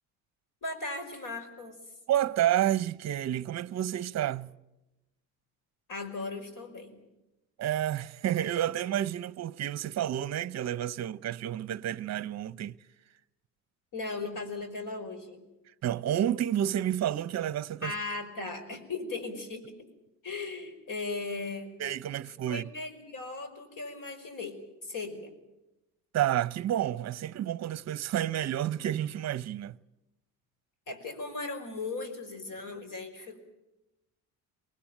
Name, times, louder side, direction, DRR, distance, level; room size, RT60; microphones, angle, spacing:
voice 1, 0.6-1.8 5.9-7.0 13.9-15.4 17.8-19.8 20.2-21.8 22.5-25.3 30.9-33.4, left 3 dB, 55° left, 5.4 m, -37 dB
voice 2, 2.1-4.5 7.6-12.8 15.8-17.9 21.8-22.7 26.1-29.8, right 11 dB, 45° right, 0.8 m, -30 dB
23.5 x 19.5 x 9.1 m
supercardioid pair, 80°, 38 cm